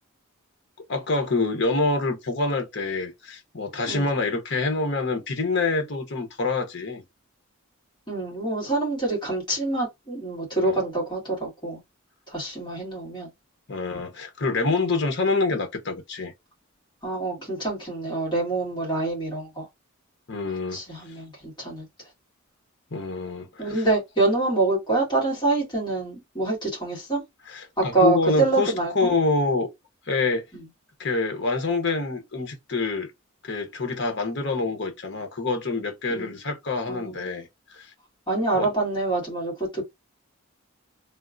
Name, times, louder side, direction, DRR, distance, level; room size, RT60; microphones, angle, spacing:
voice 1, 0.9-7.0 10.6-10.8 13.7-16.3 20.3-20.8 22.9-23.8 27.5-29.7 30.1-30.4 31.0-33.1 33.4-37.9 38.5-38.7, left 3 dB, 50° left, 0.8 m, -26 dB
voice 2, 8.1-11.8 12.3-13.3 17.0-19.7 20.7-21.9 23.6-27.2 27.8-29.1 30.5-30.6 36.1-36.4 36.9-37.3 38.3-39.8, right 3 dB, 20° left, 1.9 m, -26 dB
3.5 x 2.3 x 2.5 m
head